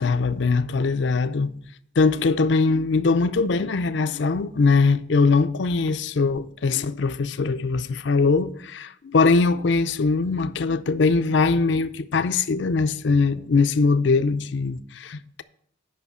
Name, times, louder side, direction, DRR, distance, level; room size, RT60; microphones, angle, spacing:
voice 1, 0.0-1.5 2.0-15.4, left 4 dB, 60° left, 0.5 m, -21 dB
9.6 x 5.6 x 5.6 m
head